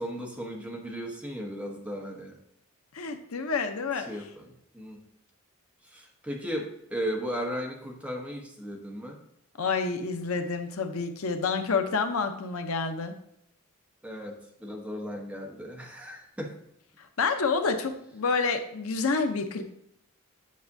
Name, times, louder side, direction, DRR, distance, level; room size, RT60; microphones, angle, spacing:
voice 1, 0.0-2.4 4.0-5.0 5.9-9.2 14.0-16.5, equal, 5° right, 0 dB, 1.1 m, -36 dB
voice 2, 2.9-4.1 9.6-13.1 17.0-19.6, left 4 dB, 80° left, 7 dB, 0.7 m, -28 dB
8.4 x 5.9 x 2.6 m, 0.76 s
head